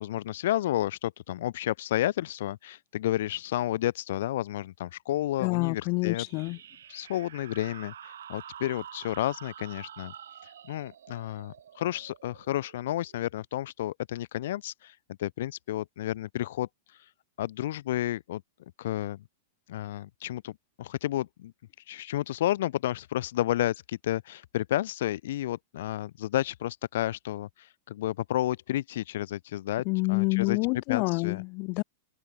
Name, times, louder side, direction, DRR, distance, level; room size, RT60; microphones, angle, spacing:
voice 1, 0.0-6.2 6.9-10.1 10.4-17.1 17.4-18.4 18.8-19.2 19.7-20.5 20.8-21.5 21.9-30.6 30.9-31.4, left 13 dB, 70° left, 0.9 m, -31 dB
voice 2, 5.4-6.6 29.8-31.8, left 31 dB, 45° left, 1.2 m, -27 dB
sound 1, 6.1-13.4, right 9 dB, 80° right, 4.1 m, -48 dB
hypercardioid pair, 125°, 0 cm